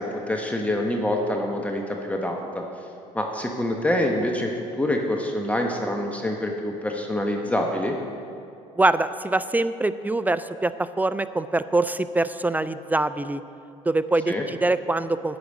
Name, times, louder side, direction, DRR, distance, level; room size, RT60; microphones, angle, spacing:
voice 1, 0.0-2.6 3.1-4.5 4.8-7.9 14.3-14.4, left 1 dB, 10° left, 1 dB, 0.9 m, -26 dB
voice 2, 8.8-13.4 13.9-15.4, right 2 dB, 10° right, 14 dB, 0.3 m, -24 dB
10.0 x 4.9 x 8.1 m, 2.6 s
supercardioid pair, 75°, 15 cm